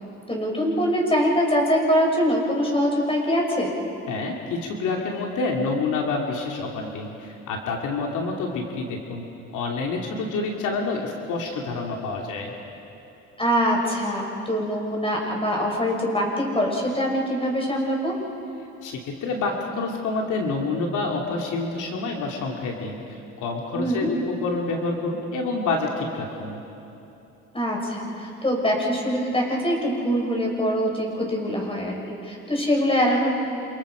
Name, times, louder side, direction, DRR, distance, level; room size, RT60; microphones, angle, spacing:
voice 1, 0.3-3.8 13.4-18.1 23.7-24.1 27.5-33.3, equal, 20° left, -1 dB, 6.0 m, -23 dB
voice 2, 4.1-9.2 9.5-12.5 18.8-26.6, left 3 dB, 85° left, 0 dB, 2.8 m, -28 dB
28.5 x 28.0 x 5.1 m, 2.9 s
cardioid pair, 90°, 30 cm